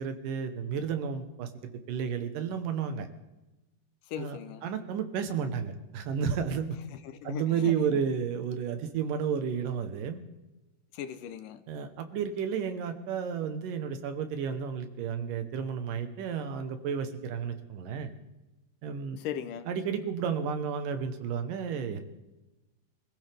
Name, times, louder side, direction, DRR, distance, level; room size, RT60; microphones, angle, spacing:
voice 1, 0.0-3.1 4.2-6.8 7.2-10.2 11.7-18.1 18.8-19.2 19.7-22.0, right 7 dB, 80° right, 8 dB, 2.8 m, -32 dB
voice 2, 4.1-4.7 6.9-8.0 10.9-11.6 19.2-19.7, left 10 dB, 80° left, 9 dB, 2.4 m, -39 dB
25.5 x 15.0 x 3.5 m, 1.0 s
omnidirectional pair, 3.8 m